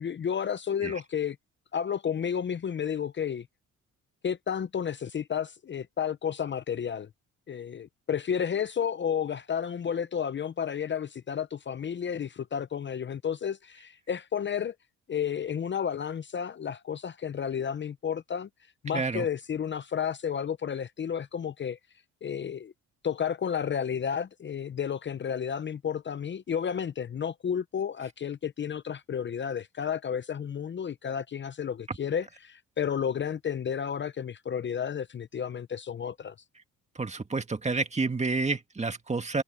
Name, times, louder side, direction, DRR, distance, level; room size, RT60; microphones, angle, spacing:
voice 1, 0.0-1.4 1.7-3.5 4.2-7.1 7.5-14.7 15.1-18.5 18.8-21.8 22.2-22.7 23.0-36.3, left 8 dB, 40° left, 0.7 m, -32 dB
voice 2, 18.9-19.3 37.0-39.4, right 3 dB, 20° right, 2.0 m, -29 dB
cardioid pair, 90°, 30 cm